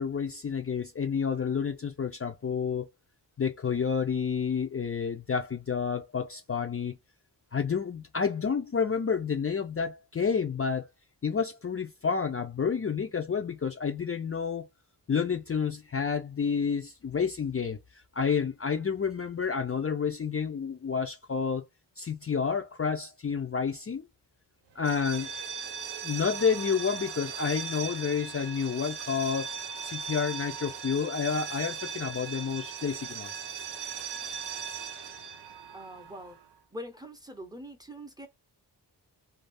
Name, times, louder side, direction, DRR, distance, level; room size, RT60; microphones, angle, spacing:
voice 1, 0.0-2.9 3.4-7.0 7.5-10.9 11.2-14.7 15.1-17.8 18.1-21.6 22.0-24.1 24.8-25.3 26.0-29.6 29.8-33.3, left 6 dB, 35° left, 0.5 m, -30 dB
sound 1, 24.8-36.5, right 7 dB, 85° right, 0.6 m, -38 dB
voice 2, 35.7-36.4 36.7-38.3, equal, 10° right, 0.6 m, -43 dB
2.6 x 2.4 x 3.3 m
wide cardioid pair, 120°, 41 cm